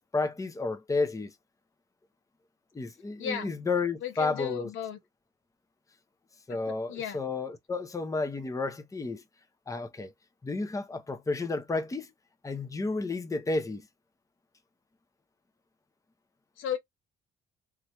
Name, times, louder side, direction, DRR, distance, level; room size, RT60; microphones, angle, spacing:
voice 1, 0.0-1.3 2.7-4.7 6.5-9.2 9.7-10.1 10.4-12.1 12.4-13.9, left 3 dB, 15° left, 0.7 m, -31 dB
voice 2, 3.2-3.5 4.0-5.0 6.9-7.2 16.6-16.8, left 9 dB, 85° left, 1.0 m, -34 dB
3.2 x 2.4 x 2.9 m
cardioid pair, 90°, 20 cm